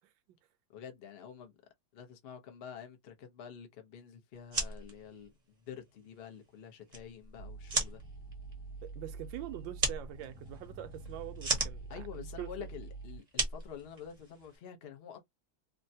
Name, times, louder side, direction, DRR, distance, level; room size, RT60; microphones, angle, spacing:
voice 1, 0.7-1.6 1.9-8.0 11.9-15.2, left 8 dB, 65° left, 0.5 m, -48 dB
sound 1, 4.3-14.6, right 3 dB, 35° right, 0.6 m, -38 dB
sound 2, 7.4-13.2, right 3 dB, 40° left, 1.0 m, -47 dB
voice 2, 8.8-12.7, right 13 dB, 80° right, 1.3 m, -44 dB
3.4 x 2.1 x 2.6 m
omnidirectional pair, 2.1 m